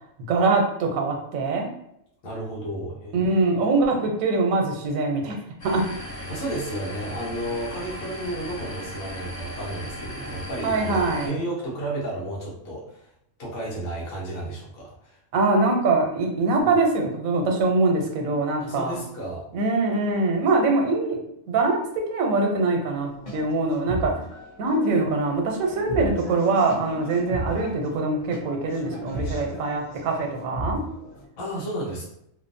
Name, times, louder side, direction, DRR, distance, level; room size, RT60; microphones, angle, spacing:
voice 1, 0.3-1.7 3.1-5.4 5.6-5.8 10.6-11.4 15.3-19.0 19.5-21.2 21.5-24.1 24.6-30.8, right 3 dB, 85° right, 2 dB, 1.0 m, -23 dB
voice 2, 2.2-3.2 6.3-13.0 13.4-15.2 16.6-16.7 18.6-19.5 31.4-32.1, right 1 dB, 85° left, -5 dB, 1.2 m, -32 dB
sound 1, 5.6-11.3, equal, 55° left, 1.4 m, -37 dB
sound 2, 22.9-31.2, right 1 dB, 40° left, 0.8 m, -36 dB
3.0 x 2.0 x 2.5 m, 0.76 s
omnidirectional pair, 1.4 m